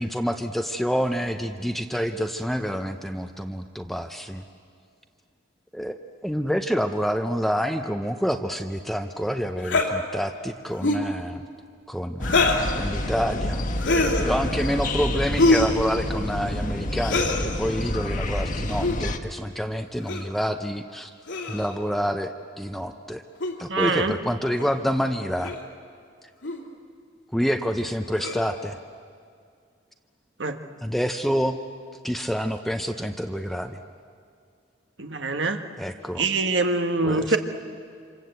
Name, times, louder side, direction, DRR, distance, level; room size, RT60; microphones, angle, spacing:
voice 1, 0.0-4.4 5.7-11.4 11.9-12.4 12.8-13.6 14.2-21.1 21.5-23.2 23.6-25.6 27.3-28.8 30.8-31.6 32.0-33.8 35.8-36.2 37.0-37.4, equal, ahead, 6 dB, 0.7 m, -27 dB
sound 1, 9.6-9.9 10.7-11.1 12.2-12.7 13.8-14.3 15.4-15.8 17.0-17.4 18.7-19.0 20.1-20.3 21.3-21.7 23.4-23.5 24.6-24.7 25.4-25.6 26.4-26.6 28.2-28.5, left 2 dB, 80° left, 2.8 m, -23 dB
sound 2, 12.2-19.2, left 1 dB, 45° left, 1.3 m, -28 dB
voice 2, 23.7-24.1 30.4-30.6 35.0-35.6 36.1-37.4, right 3 dB, 70° right, 7 dB, 1.5 m, -24 dB
27.5 x 26.0 x 8.1 m, 2.2 s
head